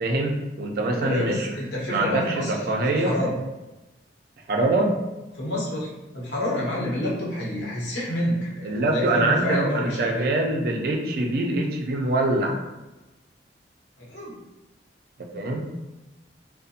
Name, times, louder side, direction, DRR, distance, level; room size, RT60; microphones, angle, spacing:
voice 1, 0.0-1.5 1.9-3.1 4.5-4.9 8.6-12.6 15.2-15.7, right 2 dB, 55° right, 1 dB, 0.4 m, -24 dB
voice 2, 0.8-3.3 5.4-10.2 14.0-14.4, left 1 dB, 85° left, -6 dB, 0.9 m, -29 dB
2.5 x 2.1 x 2.7 m, 1.1 s
head